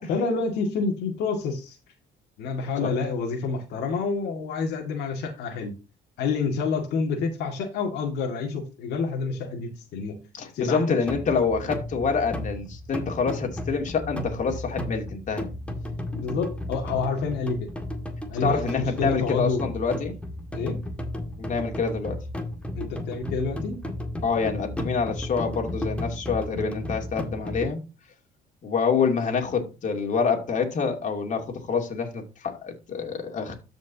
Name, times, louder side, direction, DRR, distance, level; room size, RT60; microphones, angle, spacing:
voice 1, 0.1-1.8 2.4-5.7 6.2-10.2 10.5-11.0 16.1-17.7 18.3-19.6 20.5-20.8 22.7-23.8, left 4 dB, 80° left, 2.1 m, -28 dB
voice 2, 10.3-15.5 18.4-20.2 21.4-22.2 24.2-27.8 28.6-33.5, left 5 dB, 45° left, 2.6 m, -27 dB
sound 1, 11.1-27.7, left 1 dB, 5° left, 1.9 m, -34 dB
13.5 x 5.2 x 2.8 m
cardioid pair, 110°, 17 cm